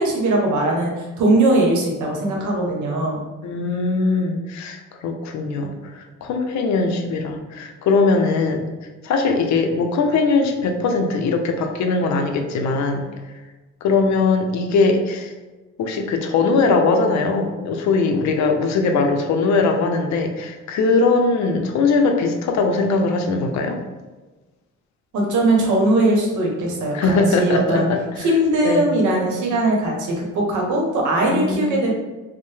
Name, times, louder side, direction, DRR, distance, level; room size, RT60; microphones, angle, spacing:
voice 1, 0.0-3.2 25.1-27.9 28.2-31.9, right 1 dB, 75° right, -1 dB, 0.8 m, -20 dB
voice 2, 3.4-8.7 9.0-13.1 13.8-15.3 15.8-23.8 26.9-28.3 28.6-28.9 31.3-31.8, left 3 dB, 65° left, 5 dB, 0.5 m, -20 dB
2.6 x 2.1 x 3.2 m, 1.2 s
cardioid pair, 90°, 30 cm